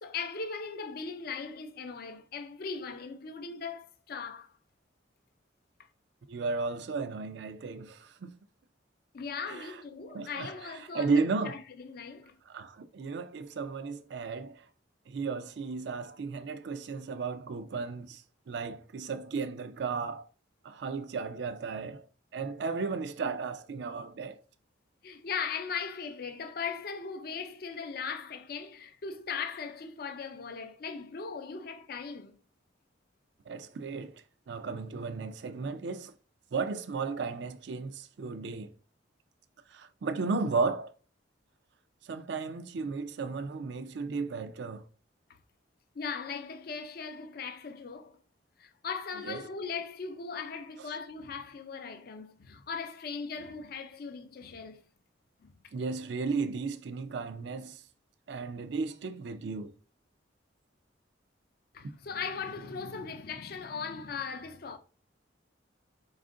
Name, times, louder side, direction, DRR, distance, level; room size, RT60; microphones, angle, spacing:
voice 1, 0.0-4.5 5.8-5.9 9.1-11.1 11.4-12.4 25.0-32.4 45.9-48.2 48.6-54.8 55.4-55.5 61.7-64.8, left 5 dB, 50° left, 0.4 m, -39 dB
voice 2, 6.3-8.3 9.5-9.8 10.1-11.6 12.5-14.7 15.1-20.3 20.6-22.0 22.3-24.4 33.5-36.1 36.5-38.7 39.7-40.9 42.0-44.8 49.2-49.4 55.7-57.8 58.3-59.7, right 4 dB, 60° right, 0.4 m, -34 dB
4.2 x 2.4 x 3.6 m
head